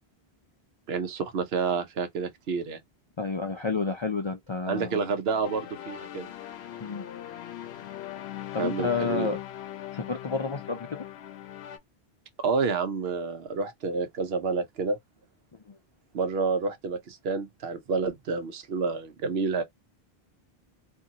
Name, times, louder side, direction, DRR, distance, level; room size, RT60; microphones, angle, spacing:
voice 1, 0.9-2.8 4.7-6.3 8.6-9.3 12.4-15.0 16.1-19.6, right 4 dB, 75° right, 0.9 m, -29 dB
voice 2, 3.2-5.0 6.8-7.0 8.5-9.4 9.9-11.0 15.7-15.8, left 4 dB, 45° left, 0.4 m, -30 dB
sound 1, 5.4-11.8, left 12 dB, 90° left, 0.8 m, -40 dB
2.7 x 2.5 x 2.7 m
omnidirectional pair, 1.0 m